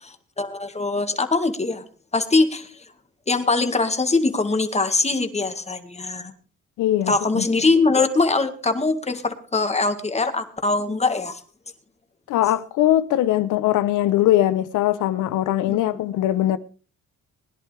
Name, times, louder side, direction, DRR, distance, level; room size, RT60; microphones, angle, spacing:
voice 1, 0.0-1.8 2.1-2.8 3.3-6.3 7.1-11.4 15.7-15.8, left 3 dB, 20° left, 1.9 m, -22 dB
voice 2, 6.8-7.4 12.3-16.6, left 13 dB, 90° left, 0.9 m, -21 dB
21.0 x 11.0 x 3.4 m
cardioid pair, 90°, 30 cm